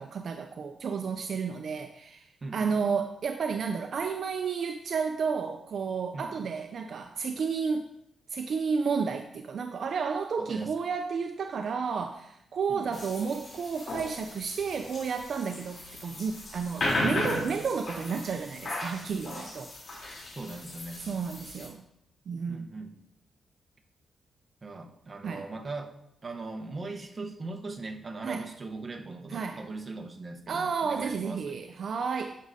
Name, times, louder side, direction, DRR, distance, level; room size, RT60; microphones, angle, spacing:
voice 1, 0.0-7.9 8.3-19.7 20.1-20.3 21.0-21.8 22.3-22.7 25.2-25.5 28.2-28.4 29.3-29.6 30.5-32.4, right 5 dB, 60° right, 7 dB, 0.4 m, -32 dB
voice 2, 2.4-2.8 6.1-6.3 10.4-10.8 12.7-13.0 19.4-19.5 20.3-21.0 22.5-23.0 24.6-26.0 26.2-31.6, right 3 dB, 35° right, 4 dB, 1.0 m, -40 dB
sound 1, 12.9-21.7, left 1 dB, 55° left, 3.3 m, -36 dB
11.0 x 6.2 x 2.7 m, 0.81 s
cardioid pair, 100°, 0 cm